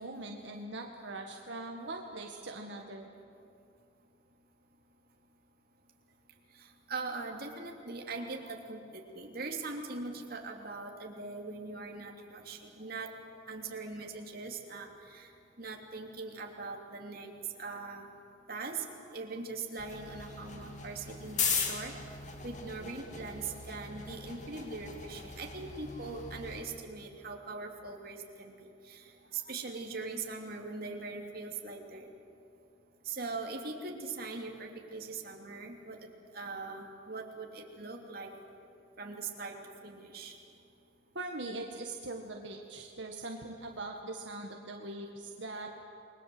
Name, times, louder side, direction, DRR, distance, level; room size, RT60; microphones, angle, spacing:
voice 1, 0.0-3.1 41.2-45.8, right 2 dB, 80° right, 2 dB, 1.8 m, -41 dB
voice 2, 6.5-13.1 13.5-15.3 15.6-17.3 17.6-18.1 18.5-18.8 19.1-21.9 22.4-32.1 33.0-36.0 36.3-38.3 39.0-39.5 39.8-40.4, right 3 dB, 55° right, 2 dB, 3.0 m, -41 dB
sound 1, 19.8-26.6, left 5 dB, 40° left, 2.6 m, -38 dB
28.5 x 21.5 x 7.9 m, 2.6 s
head